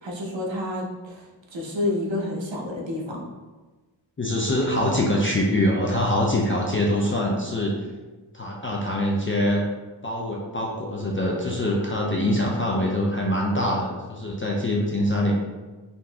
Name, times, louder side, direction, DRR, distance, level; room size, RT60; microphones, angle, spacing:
voice 1, 0.0-1.2 1.5-3.2, left 1 dB, 75° right, -2 dB, 0.8 m, -29 dB
voice 2, 4.2-7.7 8.3-9.6 10.0-15.4, left 1 dB, 30° left, -3 dB, 0.4 m, -24 dB
3.9 x 2.6 x 2.2 m, 1.3 s
wide cardioid pair, 55°, 45 cm